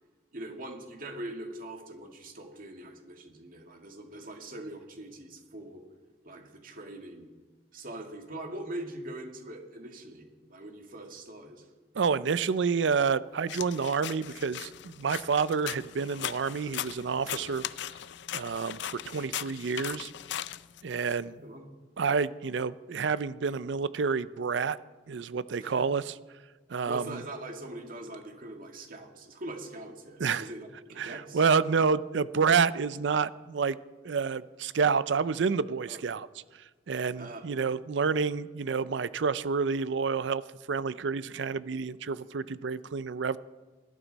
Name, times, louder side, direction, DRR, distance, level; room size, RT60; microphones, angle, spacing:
voice 1, 0.3-5.8 6.2-7.3 7.7-11.7 17.3-17.5 21.4-21.7 25.6-25.8 26.9-31.4 35.9-36.0 37.2-37.5, right 1 dB, 50° right, 3 dB, 2.0 m, -42 dB
voice 2, 11.9-17.6 18.3-20.1 20.8-21.4 22.0-24.8 25.1-26.2 26.7-27.2 30.2-30.5 31.0-33.8 34.0-36.3 36.9-40.4 40.7-43.4, right 5 dB, 70° right, 17 dB, 0.5 m, -29 dB
sound 1, 13.5-21.1, left 11 dB, 65° left, 0.4 m, -39 dB
20.0 x 12.5 x 4.1 m, 1.3 s
head